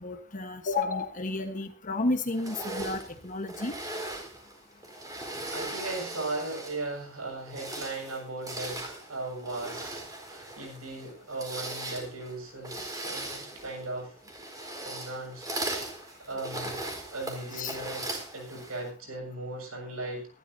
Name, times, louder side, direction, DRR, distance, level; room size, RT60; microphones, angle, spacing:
voice 1, 0.0-3.7 17.5-17.8, left 2 dB, 40° left, 6 dB, 1.3 m, -31 dB
sound 1, 2.3-6.9 7.4-18.9, right 2 dB, 20° right, 4.1 m, -39 dB
voice 2, 5.5-14.1 14.8-15.4 15.8-16.8 17.1-20.3, right 2 dB, 80° right, 3 dB, 7.0 m, -38 dB
23.0 x 12.0 x 2.7 m, 0.33 s
head